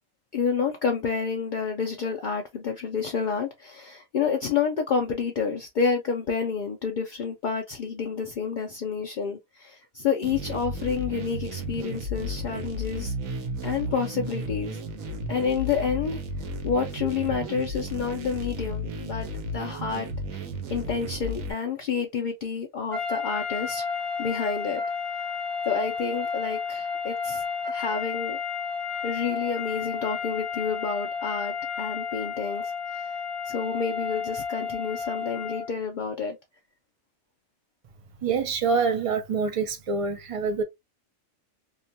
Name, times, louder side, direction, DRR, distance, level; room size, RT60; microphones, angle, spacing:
voice 1, 0.3-13.1 13.6-14.8 15.3-16.2 16.6-19.3 19.5-23.8 24.2-24.8 25.7-28.4 29.0-33.2 33.4-36.4, left 6 dB, 70° left, 0.4 m, -29 dB
sound 1, 10.2-21.5, equal, 85° right, 1.1 m, -34 dB
sound 2, 22.9-35.8, left 6 dB, ahead, 0.5 m, -32 dB
voice 2, 38.2-40.6, right 5 dB, 60° right, 0.3 m, -26 dB
2.8 x 2.2 x 2.7 m
omnidirectional pair, 1.4 m